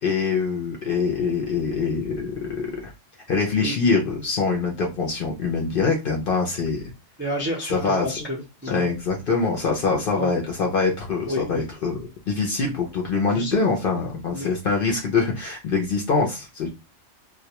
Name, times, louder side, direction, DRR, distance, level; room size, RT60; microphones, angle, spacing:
voice 1, 0.0-2.9 3.3-6.9 7.7-8.2 8.6-12.0 12.3-16.7, left 4 dB, 60° left, 0 dB, 0.6 m, -24 dB
voice 2, 7.2-8.9 10.2-10.3 11.3-11.6 13.3-13.6 14.3-14.5, equal, 15° right, -3 dB, 0.4 m, -30 dB
2.2 x 2.1 x 2.8 m, 0.26 s
omnidirectional pair, 1.3 m